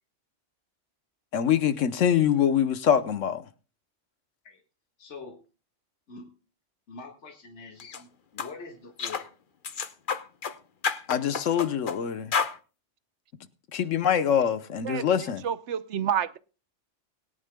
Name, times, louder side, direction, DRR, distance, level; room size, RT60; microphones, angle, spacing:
voice 1, 1.3-3.4 11.1-12.3 13.7-15.4, left 9 dB, 90° left, 1.3 m, -24 dB
voice 2, 5.0-5.4 6.1-6.4 6.9-9.3, left 4 dB, 70° left, 2.0 m, -44 dB
sound 1, 7.8-8.0 8.4-8.5 9.0-9.3 9.6-10.6 10.8-12.0 12.3-12.6, left 5 dB, 45° left, 1.0 m, -30 dB
voice 3, 14.8-16.4, right 8 dB, 70° right, 1.0 m, -30 dB
21.5 x 10.5 x 2.2 m
omnidirectional pair, 1.3 m